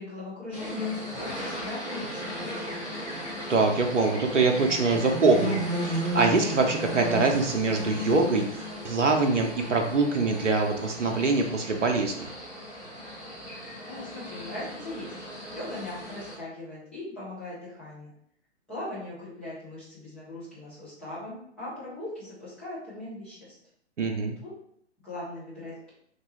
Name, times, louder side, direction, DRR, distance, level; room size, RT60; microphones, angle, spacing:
voice 1, 0.0-2.8 13.8-15.1 15.5-18.1 18.7-23.5 24.4-24.6 25.0-25.9, left 1 dB, ahead, -12 dB, 0.4 m, -39 dB
sound 1, 0.5-16.3, left 1 dB, 20° left, 1.4 m, -35 dB
voice 2, 3.5-12.3 24.0-24.4, right 3 dB, 85° right, 3 dB, 0.6 m, -24 dB
3.0 x 2.9 x 2.8 m, 0.69 s
figure-of-eight pair, 120°, 35 cm